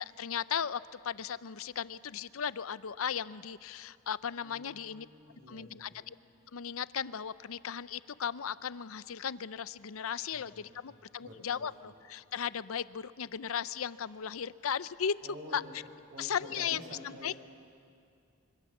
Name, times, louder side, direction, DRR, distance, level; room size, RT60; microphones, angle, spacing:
voice 1, 0.0-5.1 5.5-6.2 6.5-15.2 15.5-15.6 16.2-16.8 17.2-17.3, left 7 dB, 75° left, 16 dB, 0.6 m, -36 dB
voice 2, 4.4-6.1 10.3-11.7 15.2-15.7 16.1-17.3, left 1 dB, 45° right, 0 dB, 5.9 m, -49 dB
25.5 x 25.0 x 7.3 m, 2.5 s
head